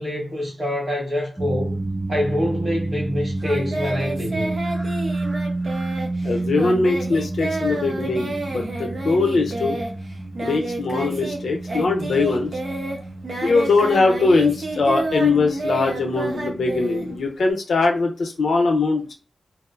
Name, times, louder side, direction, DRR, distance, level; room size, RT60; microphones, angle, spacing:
voice 1, 0.0-1.8 2.1-4.5, left 1 dB, 30° right, 1.2 m, -25 dB
sound 1, 1.4-17.2, right 2 dB, 5° right, 0.3 m, -30 dB
Singing, 3.4-11.4 11.6-17.5, right 2 dB, 50° right, 0.6 m, -30 dB
voice 2, 6.2-9.8 10.4-12.5 13.4-19.1, left 3 dB, 70° left, 0.7 m, -21 dB
2.9 x 2.1 x 2.3 m
wide cardioid pair, 150°, 0 cm